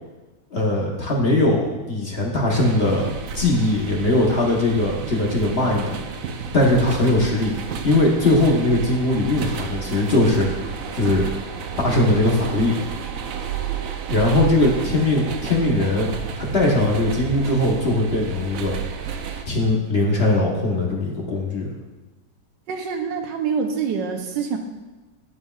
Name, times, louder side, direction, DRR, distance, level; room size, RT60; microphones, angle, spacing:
voice 1, 0.5-3.1 3.3-6.0 6.5-7.5 7.8-11.3 11.8-12.8 14.1-16.1 16.4-18.7 19.5-21.7, left 2 dB, 40° left, -2 dB, 1.1 m, -20 dB
sound 1, 2.5-19.4, right 7 dB, 65° right, 0.8 m, -31 dB
voice 2, 7.1-7.5 22.7-24.6, right 6 dB, 85° right, 5 dB, 1.5 m, -26 dB
9.4 x 8.7 x 2.4 m, 1.2 s
omnidirectional pair, 1.9 m